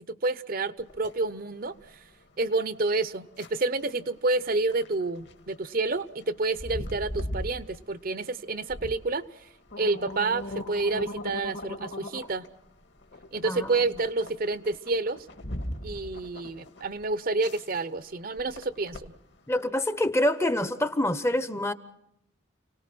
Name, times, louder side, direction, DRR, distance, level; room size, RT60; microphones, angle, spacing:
voice 1, 0.1-2.0 2.4-9.5 9.8-12.4 13.3-15.3 15.8-19.1, right 3 dB, 45° right, 15 dB, 0.8 m, -29 dB
sound 1, 0.8-19.6, left 1 dB, 55° left, 1.8 m, -41 dB
voice 2, 19.5-21.7, left 1 dB, 15° left, 13 dB, 0.8 m, -26 dB
29.5 x 18.5 x 6.1 m, 0.81 s
head